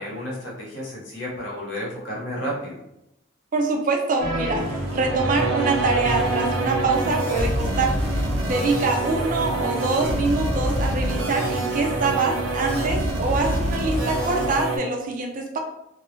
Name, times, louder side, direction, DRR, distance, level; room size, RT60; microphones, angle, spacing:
voice 1, 0.0-2.8, equal, 65° left, -4 dB, 0.9 m, -32 dB
voice 2, 3.5-8.0 8.4-15.6, right 3 dB, 40° right, 2 dB, 0.3 m, -24 dB
sound 1, 4.2-14.8, right 2 dB, 80° right, 0.6 m, -26 dB
sound 2, 4.6-14.6, equal, 45° left, 0.7 m, -35 dB
2.2 x 2.1 x 2.9 m, 0.85 s
head